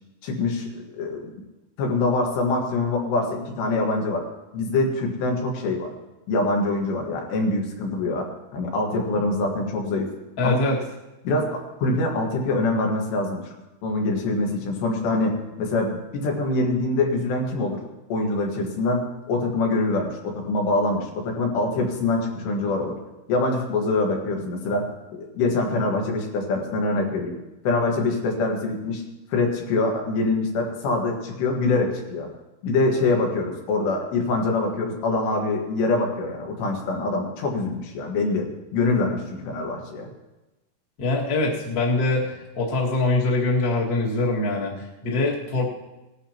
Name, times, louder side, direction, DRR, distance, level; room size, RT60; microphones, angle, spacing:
voice 1, 0.2-1.3 1.8-4.3 4.5-5.9 6.3-10.1 10.4-10.6 11.3-13.5 13.8-17.8 18.1-23.0 23.3-24.8 25.1-27.4 27.7-29.0 29.3-32.3 32.6-40.1, left 2 dB, 80° left, 0 dB, 3.8 m, -24 dB
voice 2, 10.4-10.8 41.0-45.7, left 2 dB, 35° left, -4 dB, 1.5 m, -23 dB
19.0 x 11.5 x 2.9 m, 1.0 s
omnidirectional pair, 4.9 m